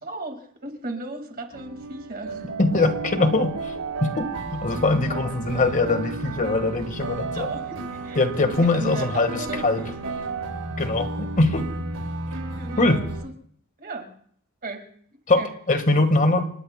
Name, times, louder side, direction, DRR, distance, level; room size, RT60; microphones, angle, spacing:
voice 1, 0.0-2.5 5.0-5.3 7.3-10.2 12.6-13.3 13.8-14.1 14.6-15.5, right 2 dB, 40° right, 4 dB, 2.0 m, -36 dB
sound 1, 1.5-13.2, right 3 dB, 70° right, 7.0 m, -33 dB
voice 2, 2.6-3.7 4.0-7.5 8.2-9.9 10.8-11.7 12.8-13.0 15.3-16.5, left 2 dB, 35° left, 8 dB, 1.5 m, -22 dB
29.0 x 19.0 x 2.2 m, 0.63 s
head